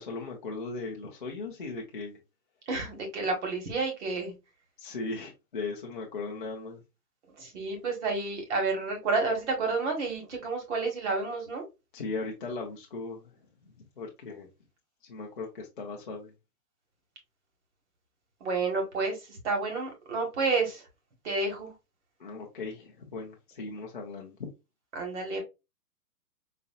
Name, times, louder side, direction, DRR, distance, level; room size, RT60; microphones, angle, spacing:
voice 1, 0.0-2.2 4.8-6.8 11.9-13.3 13.6-14.5 15.0-16.3 22.2-24.4, left 3 dB, 35° left, 0.4 m, -38 dB
voice 2, 2.7-4.3 7.4-11.6 18.4-19.2 19.4-20.8 21.2-21.7 24.9-25.4, right 3 dB, 45° right, 1.4 m, -30 dB
4.1 x 2.5 x 2.3 m
hypercardioid pair, 155°, 49 cm